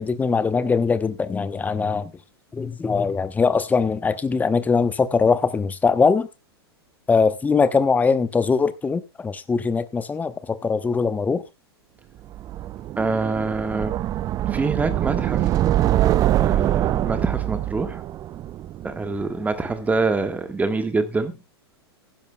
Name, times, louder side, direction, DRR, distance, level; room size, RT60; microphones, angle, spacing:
voice 1, 0.0-2.1 2.5-6.3 7.1-11.4, left 5 dB, 10° left, 0.9 m, -21 dB
sound 1, 12.3-19.4, right 13 dB, 25° right, 0.5 m, -24 dB
voice 2, 13.0-14.0 14.5-15.6 16.4-18.0 18.8-21.3, right 3 dB, 10° right, 1.6 m, -25 dB
16.0 x 12.0 x 2.3 m
figure-of-eight pair, 100°, 14 cm